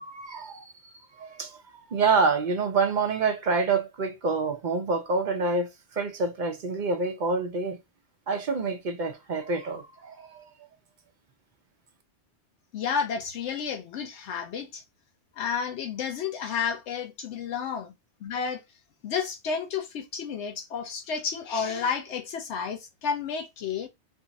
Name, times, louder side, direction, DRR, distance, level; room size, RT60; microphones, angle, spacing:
voice 1, 0.0-1.6 1.9-7.8 8.3-10.5, right 4 dB, 50° right, 0.7 m, -27 dB
voice 2, 12.7-14.8 15.4-17.9 18.2-18.6 19.0-23.9, left 6 dB, 80° left, 0.9 m, -31 dB
2.6 x 2.4 x 4.0 m
omnidirectional pair, 1.2 m